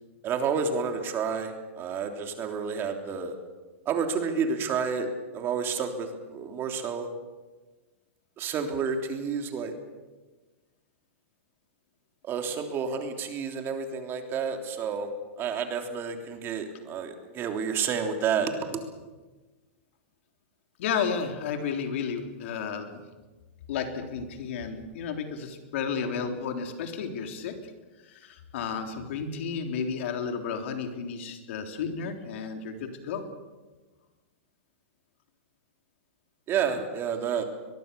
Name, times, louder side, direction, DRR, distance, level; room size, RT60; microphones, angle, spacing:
voice 1, 0.2-3.3 3.8-5.1 5.3-7.1 8.4-9.7 12.2-15.1 15.4-18.8 36.5-37.4, right 6 dB, 30° right, 5 dB, 3.3 m, -30 dB
voice 2, 20.8-23.0 23.7-27.6 28.0-33.2, left 6 dB, 65° left, 5 dB, 3.6 m, -32 dB
22.5 x 22.0 x 7.0 m, 1.2 s
hypercardioid pair, 130°, 7 cm